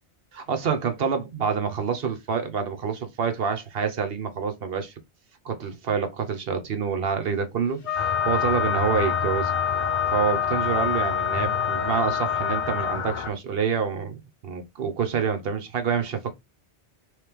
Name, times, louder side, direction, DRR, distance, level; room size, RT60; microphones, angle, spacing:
voice 1, 0.3-4.9 5.4-9.5 10.1-16.3, right 6 dB, 65° right, 0.9 m, -27 dB
Wind instrument woodwind instrument, 7.8-13.0, left 8 dB, 80° left, 1.1 m, -26 dB
sound 1, 8.0-13.3, left 6 dB, 45° left, 0.4 m, -31 dB
3.2 x 3.1 x 3.4 m
omnidirectional pair, 1.1 m